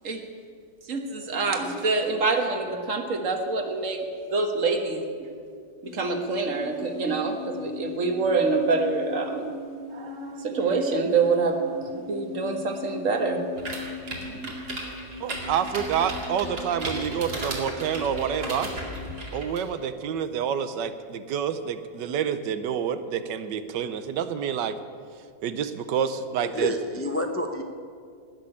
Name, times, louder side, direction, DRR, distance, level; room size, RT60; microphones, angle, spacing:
voice 1, 0.9-5.1 5.8-9.5 9.9-13.4 14.3-14.5, right 4 dB, 50° right, 5 dB, 1.7 m, -26 dB
sound 1, 5.8-19.3, left 3 dB, 60° left, 2.0 m, -40 dB
sound 2, 13.6-19.6, right 2 dB, 65° right, 2.8 m, -35 dB
voice 2, 15.2-18.7 19.3-24.8 25.4-26.7, right 8 dB, 90° right, 11 dB, 1.4 m, -28 dB
voice 3, 26.4-27.6, left 1 dB, 20° left, 5 dB, 0.3 m, -29 dB
19.0 x 6.4 x 9.7 m, 2.2 s
omnidirectional pair, 1.8 m